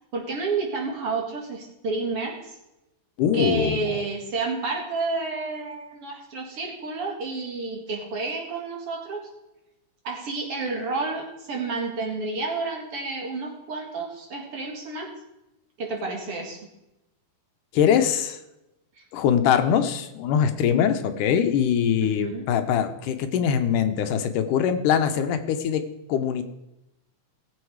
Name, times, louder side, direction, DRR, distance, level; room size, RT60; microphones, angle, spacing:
voice 1, 0.1-2.6 3.3-9.3 10.0-15.1 15.8-16.6 22.0-22.5, right 3 dB, 50° right, 0 dB, 2.7 m, -30 dB
voice 2, 3.2-4.0 17.7-18.4 19.1-25.8 26.1-26.4, left 8 dB, 80° left, 8 dB, 2.4 m, -22 dB
18.5 x 7.3 x 4.7 m, 0.93 s
omnidirectional pair, 3.7 m